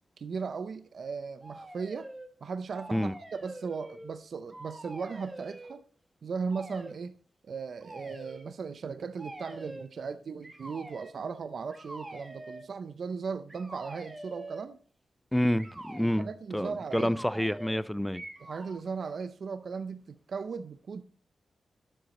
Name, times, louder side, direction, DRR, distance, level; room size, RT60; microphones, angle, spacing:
voice 1, 0.2-2.1 2.4-5.8 6.2-7.1 7.4-14.8 16.0-17.1 18.4-21.0, right 5 dB, 65° right, 0.5 m, -37 dB
sound 1, 1.4-2.3 2.7-4.2 4.5-5.8 6.5-7.0 7.8-8.5 9.2-9.9 10.4-11.2 11.7-12.7 13.5-14.7 15.6-16.1 16.9-17.8 18.1-18.8, right 1 dB, 20° right, 1.7 m, -45 dB
voice 2, 15.3-18.2, equal, 5° left, 0.4 m, -28 dB
11.5 x 7.8 x 4.1 m
wide cardioid pair, 95°, 0 cm